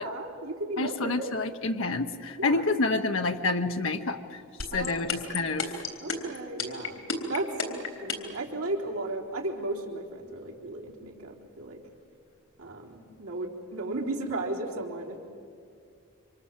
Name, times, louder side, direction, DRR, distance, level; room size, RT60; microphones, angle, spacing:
voice 1, 0.0-1.3 2.4-2.7 4.7-5.7 6.0-7.0 7.3-11.8 12.6-15.2, right 2 dB, 85° right, -1 dB, 3.7 m, -35 dB
voice 2, 0.8-4.4 4.7-5.8, left 3 dB, 70° left, 5 dB, 0.9 m, -28 dB
sound 1, 4.6-8.4, left 6 dB, 85° left, 3.7 m, -30 dB
28.0 x 25.5 x 7.4 m, 2.3 s
head